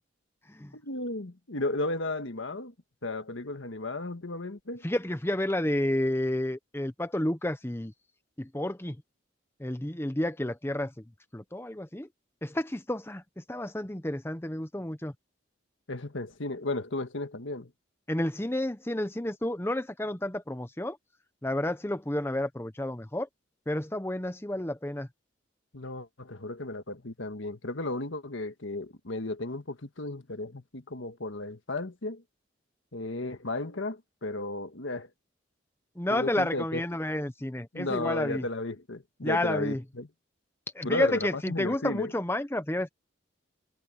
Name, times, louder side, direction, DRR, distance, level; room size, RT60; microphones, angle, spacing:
voice 1, 0.7-2.7 3.0-4.9 15.9-17.7 25.7-32.2 32.9-35.1 36.1-36.8 37.7-40.1 40.8-42.1, left 2 dB, 80° left, 1.6 m, -34 dB
voice 2, 4.8-7.9 8.4-9.0 9.6-10.9 11.3-12.1 12.4-15.1 18.1-21.0 21.4-23.3 23.7-25.1 36.0-38.4 39.2-39.8 40.7-42.9, left 1 dB, 10° left, 0.8 m, -30 dB
head